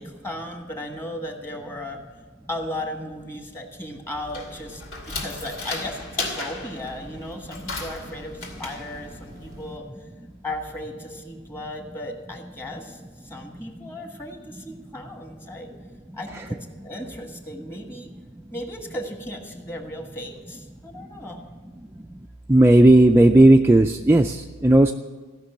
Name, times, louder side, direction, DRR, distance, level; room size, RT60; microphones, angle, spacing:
voice 1, 0.0-2.0 2.5-9.8 10.4-15.7 16.1-18.1 18.5-21.4, left 1 dB, 10° left, 4 dB, 1.4 m, -36 dB
sound 1, 4.1-9.8, left 2 dB, 65° left, 2.6 m, -35 dB
voice 2, 22.5-24.4 24.6-24.9, right 1 dB, 10° right, 3 dB, 0.3 m, -14 dB
16.0 x 6.0 x 8.8 m, 1.4 s
head